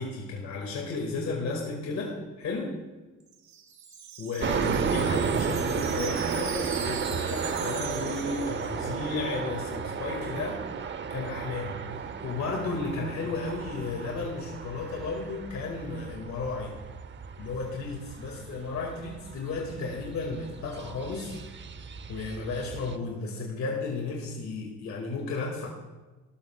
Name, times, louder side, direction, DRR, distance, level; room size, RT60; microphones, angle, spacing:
voice 1, 0.0-2.8 4.2-10.6 11.1-16.7 17.4-21.4 22.1-25.7, left 3 dB, 65° left, -1 dB, 2.2 m, -33 dB
Wind chime, 3.2-9.2, right 6 dB, 65° right, 1.5 m, -41 dB
sound 1, 4.4-23.0, right 6 dB, 40° right, 0.7 m, -34 dB
18.0 x 12.5 x 2.4 m, 1.2 s
cardioid pair, 90°, 30 cm